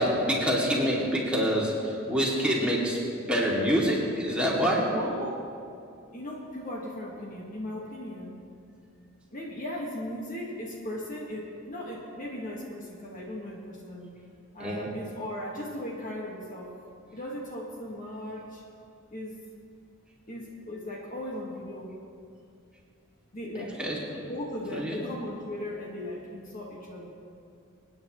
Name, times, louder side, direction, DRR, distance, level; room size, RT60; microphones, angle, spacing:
voice 1, 0.0-3.0 3.3-4.8 14.6-14.9 23.8-24.2 24.7-25.1, equal, 5° right, -5 dB, 2.3 m, -26 dB
voice 2, 4.9-5.5 6.1-8.3 9.3-14.1 14.5-16.7 17.1-18.6 19.1-19.4 20.3-21.9 23.3-23.8 24.3-27.1, left 1 dB, 40° left, -2 dB, 1.5 m, -37 dB
26.5 x 9.6 x 3.0 m, 2.5 s
head